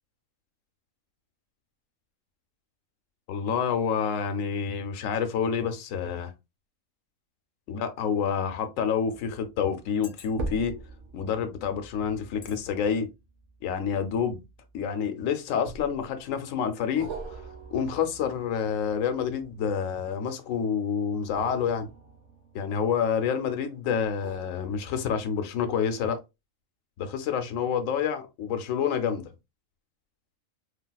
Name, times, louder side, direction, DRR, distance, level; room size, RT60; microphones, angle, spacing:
voice 1, 3.3-6.3 7.7-10.8 11.1-13.1 13.6-14.4 14.7-17.4 17.7-21.9 22.5-26.2 27.0-29.3, left 7 dB, 75° left, 1.0 m, -28 dB
sound 1, 7.9-8.1 8.8-8.9 9.8-10.7 11.4-11.5 12.4-12.6 13.0-13.2, left 6 dB, 50° left, 0.7 m, -49 dB
sound 2, 9.1-9.4 10.3-15.0 15.7-16.3 17.0-19.9 21.1-23.2 24.0-25.4 25.9-26.0, right 3 dB, 65° right, 1.0 m, -43 dB
3.4 x 2.4 x 2.2 m
omnidirectional pair, 1.4 m